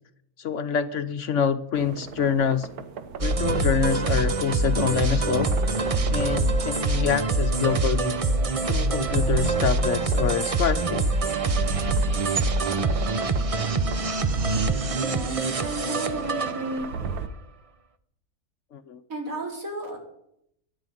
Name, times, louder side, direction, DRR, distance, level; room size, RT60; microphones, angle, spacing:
voice 1, 0.4-2.7 3.2-5.5 6.1-8.2 8.7-11.1 18.7-19.0, left 7 dB, 60° left, 11 dB, 1.0 m, -26 dB
sound 1, 1.7-17.3, right 4 dB, 85° right, 1.5 m, -34 dB
sound 2, 3.2-17.1, right 3 dB, 35° right, 0.6 m, -25 dB
voice 2, 15.0-16.8 19.1-20.0, right 1 dB, 65° right, 0 dB, 4.8 m, -33 dB
13.5 x 10.5 x 9.1 m, 0.76 s
omnidirectional pair, 1.5 m